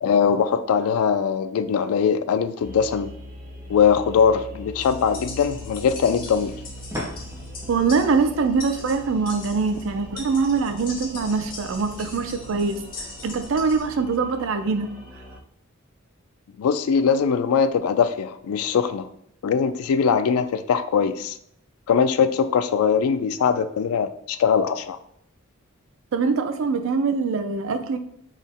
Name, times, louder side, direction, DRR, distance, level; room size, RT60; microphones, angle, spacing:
voice 1, 0.0-3.1 3.7-6.5 16.6-19.1 19.4-21.4 21.9-25.0, left 6 dB, 85° left, 12 dB, 0.3 m, -21 dB
sound 1, 2.6-15.4, equal, 40° right, 0.8 m, -41 dB
sound 2, 4.8-13.9, left 3 dB, 40° left, 0.8 m, -41 dB
sound 3, 6.9-9.5, left 1 dB, 15° right, 0.6 m, -38 dB
voice 2, 7.7-12.9 13.2-14.9 26.1-28.0, right 4 dB, 65° right, 9 dB, 0.4 m, -23 dB
3.9 x 2.0 x 3.6 m, 0.70 s
head